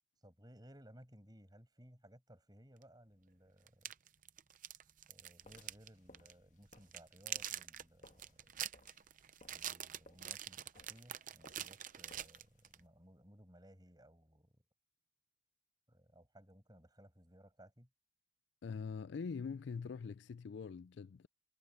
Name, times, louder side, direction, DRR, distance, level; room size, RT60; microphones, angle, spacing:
voice 1, 0.2-3.9 5.1-8.5 9.5-14.6 15.9-17.9, equal, 20° right, 6.2 m, -61 dB
sound 1, 2.8-2.9 3.7-5.9 6.1-6.3 6.7-12.8, right 11 dB, 40° right, 0.6 m, -45 dB
sound 2, 5.4-12.9, left 2 dB, 40° left, 1.7 m, -65 dB
voice 2, 18.6-21.3, left 5 dB, 60° left, 0.3 m, -43 dB
head